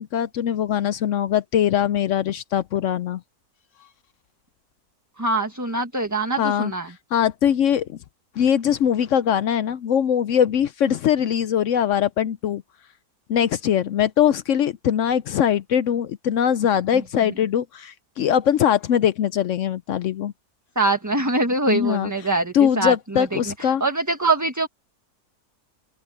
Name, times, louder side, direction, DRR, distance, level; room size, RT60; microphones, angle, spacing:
voice 1, 0.0-3.2 6.4-6.7 7.1-8.0 8.4-12.6 13.3-20.3 21.7-22.1 22.5-23.8, left 9 dB, 65° left, 0.8 m, -21 dB
voice 2, 5.2-6.9 20.7-24.7, right 2 dB, 10° right, 1.4 m, -24 dB
open air
omnidirectional pair, 1.7 m